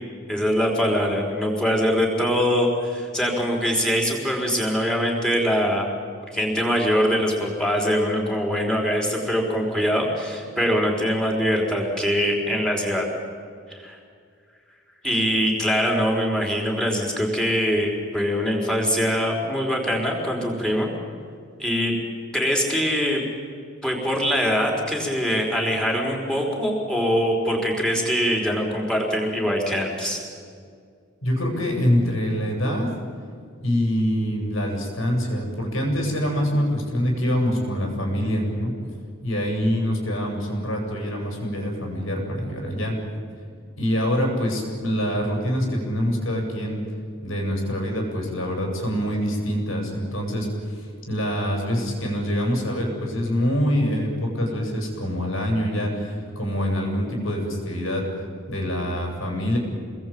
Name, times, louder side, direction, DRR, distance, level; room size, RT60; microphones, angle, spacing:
voice 1, 0.3-5.9 6.3-13.0 13.7-14.0 15.0-20.9 21.6-21.9 22.3-23.2 23.8-30.2, equal, 5° left, -1 dB, 4.8 m, -23 dB
voice 2, 31.2-33.0 33.6-38.8 39.2-43.0 43.8-46.8 47.2-58.1 58.5-59.6, equal, 80° left, 1 dB, 7.7 m, -25 dB
27.5 x 21.0 x 8.9 m, 2.2 s
head